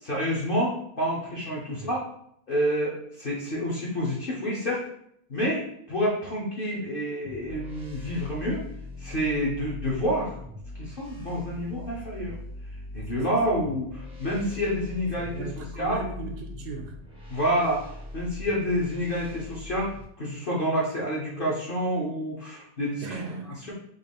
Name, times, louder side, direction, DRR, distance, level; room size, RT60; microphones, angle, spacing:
voice 1, 0.0-2.0 2.5-4.8 5.3-8.6 9.0-10.3 10.8-12.3 12.9-15.5 15.8-16.0 17.3-17.8 18.1-23.0, equal, 45° left, -5 dB, 0.7 m, -28 dB
sound 1, 7.2-20.0, left 2 dB, 5° right, 0.5 m, -41 dB
voice 2, 15.2-17.0 23.0-23.7, right 4 dB, 80° right, 3 dB, 1.2 m, -38 dB
3.7 x 2.4 x 3.5 m, 0.70 s
omnidirectional pair, 1.7 m